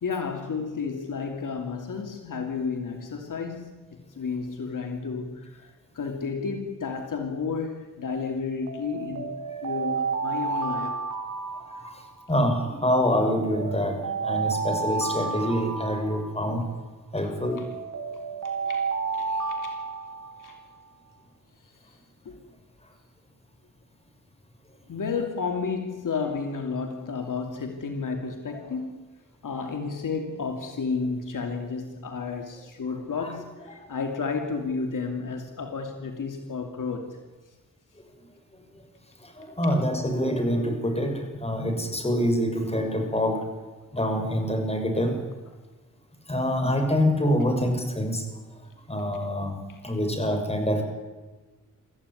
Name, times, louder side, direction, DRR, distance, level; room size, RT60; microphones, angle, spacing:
voice 1, 0.0-3.9 4.1-9.3 9.6-11.0 17.2-17.3 17.6-17.7 18.6-19.8 20.4-20.6 22.2-22.4 24.9-29.1 29.4-37.2, left 5 dB, 70° left, 4 dB, 2.8 m, -32 dB
Alarm, 8.7-12.4 13.1-16.8 17.4-20.7, right 4 dB, 60° right, 3.8 m, -31 dB
voice 2, 12.3-16.6 17.1-17.6 28.5-28.7 33.2-33.3 39.4-43.4 43.9-45.1 46.3-48.2 48.9-49.6 49.8-50.8, equal, 20° left, 5 dB, 6.1 m, -25 dB
24.5 x 15.0 x 9.9 m, 1.2 s
cardioid pair, 75°, 33 cm